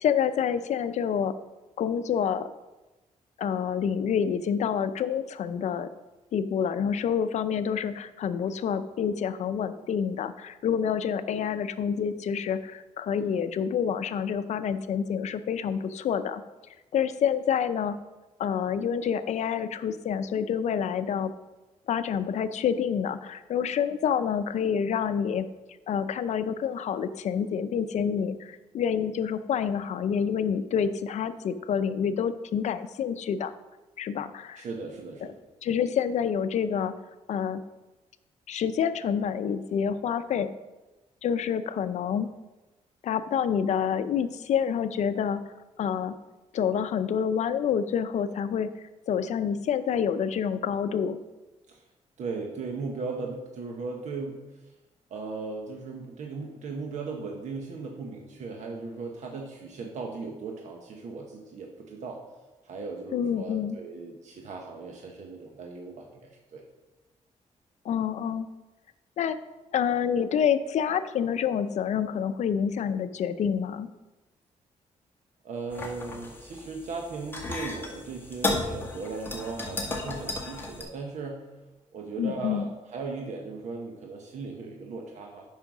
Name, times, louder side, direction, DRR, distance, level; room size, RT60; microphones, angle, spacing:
voice 1, 0.0-1.3 1.8-2.5 3.4-5.9 6.3-16.4 16.9-18.0 18.4-21.3 21.9-25.5 25.9-33.5 34.0-34.6 35.6-36.9 37.3-37.6 38.5-40.5 41.2-42.3 43.0-45.4 45.8-46.1 46.5-48.7 49.1-51.2 63.1-63.8 67.8-68.5 69.2-69.4 69.7-73.9 82.2-82.6, left 7 dB, 70° left, 11 dB, 0.6 m, -27 dB
voice 2, 34.6-35.4 51.7-51.8 52.2-54.4 55.1-62.2 62.6-66.6 75.4-81.4 81.9-85.4, right 4 dB, 75° right, 1 dB, 1.2 m, -37 dB
sound 1, 75.7-80.8, left 2 dB, 15° left, 1.7 m, -34 dB
9.1 x 5.6 x 6.1 m, 1.1 s
cardioid pair, 140°, 12 cm